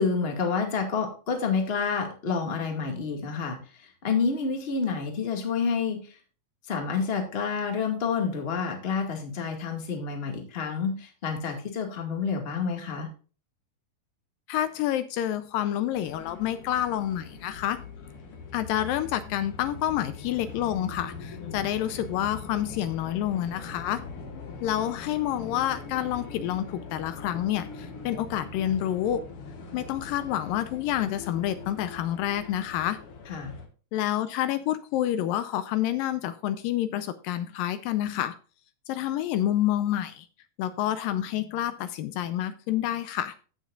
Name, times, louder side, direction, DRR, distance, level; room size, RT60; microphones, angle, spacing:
voice 1, 0.0-6.0 6.7-13.1 21.4-21.6 33.3-33.5, left 5 dB, 25° left, 3 dB, 1.4 m, -29 dB
voice 2, 14.5-17.8 18.5-24.0 24.6-29.2 29.7-33.0 33.9-38.4 38.9-40.3 40.6-43.4, left 12 dB, 80° left, 13 dB, 2.2 m, -28 dB
sound 1, 15.9-33.7, left 4 dB, 50° left, 1.8 m, -42 dB
16.0 x 6.4 x 2.4 m, 0.37 s
omnidirectional pair, 4.2 m